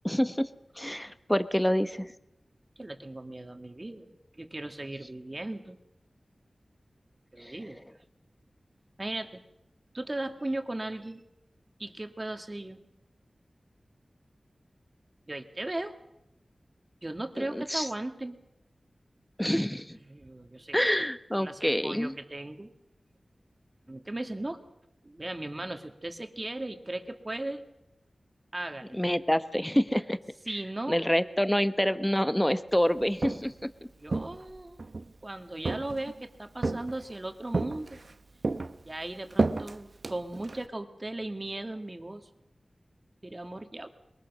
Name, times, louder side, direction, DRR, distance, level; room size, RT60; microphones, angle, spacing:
voice 1, 0.0-0.5 0.8-2.1 7.4-7.6 17.4-17.9 19.4-20.0 20.7-22.1 28.9-30.2 30.9-33.7, equal, 10° left, 12 dB, 1.0 m, -27 dB
voice 2, 2.8-5.8 7.3-7.8 9.0-9.4 9.9-11.2 11.8-12.8 15.3-15.9 17.0-18.4 20.1-20.9 21.4-22.7 23.9-24.6 25.0-27.6 28.5-29.0 30.5-31.1 34.0-34.8 35.2-38.0 38.8-42.3 43.2-43.9, right 1 dB, 35° right, 6 dB, 2.1 m, -37 dB
Walk footsteps, 33.0-33.6 34.1-35.1 35.6-36.2 36.6-37.2 37.5-38.1 38.4-40.7, right 3 dB, 65° right, 0.9 m, -31 dB
22.0 x 20.5 x 6.2 m, 0.85 s
cardioid pair, 45°, 0 cm